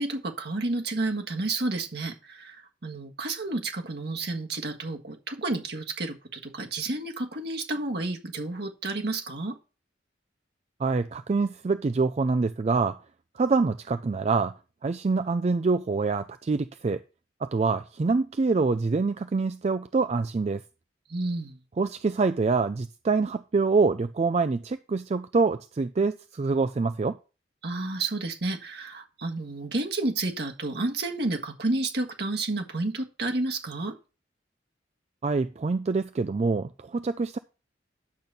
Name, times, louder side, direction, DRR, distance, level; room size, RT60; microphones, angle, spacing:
voice 1, 0.0-9.6 21.1-21.6 27.6-33.9, right 2 dB, 60° right, 1.6 m, -31 dB
voice 2, 10.8-13.0 13.3-14.5 14.8-17.0 17.4-20.6 21.8-27.2 35.2-37.4, right 4 dB, 35° right, 0.3 m, -25 dB
10.5 x 4.1 x 6.8 m
head